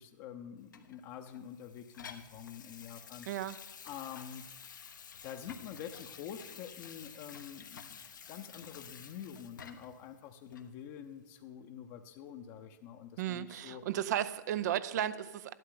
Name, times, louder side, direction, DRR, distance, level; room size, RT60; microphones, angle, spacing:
voice 1, 0.0-3.3 3.8-4.4 5.2-8.0 8.3-13.8, left 9 dB, 40° left, 5 dB, 0.7 m, -47 dB
Water tap faucet / Sink (filling or washing), 0.7-10.0 10.5-10.7, left 7 dB, 80° left, 1.1 m, -51 dB
voice 2, 13.2-15.5, right 11 dB, 60° right, 15 dB, 0.5 m, -34 dB
12.5 x 12.0 x 3.8 m, 1.1 s
hypercardioid pair, 120°, 10 cm